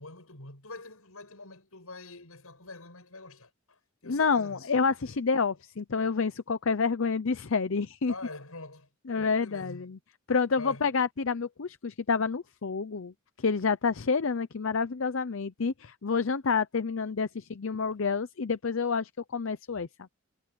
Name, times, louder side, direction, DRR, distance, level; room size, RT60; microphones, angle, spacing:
voice 1, 0.0-4.7 8.1-8.9 9.1-9.9 10.6-10.9, left 2 dB, 80° left, 7.4 m, -45 dB
voice 2, 4.0-8.1 9.1-10.0 10.3-20.1, left 5 dB, 65° left, 0.6 m, -28 dB
head